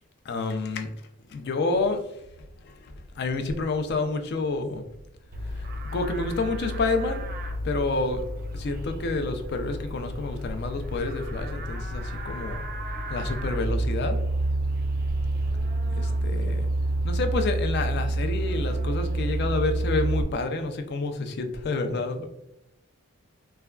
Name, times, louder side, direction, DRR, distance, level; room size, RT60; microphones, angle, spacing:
voice 1, 0.3-0.9 1.3-2.0 2.6-4.9 5.5-7.3 7.6-8.2 8.5-12.6 13.1-14.2 15.9-16.7 17.0-22.3, left 3 dB, 50° left, 6 dB, 0.3 m, -29 dB
Livestock farm animals working animals, 5.3-20.2, right 1 dB, 40° right, 0.4 m, -29 dB
3.4 x 2.1 x 2.2 m, 0.86 s
head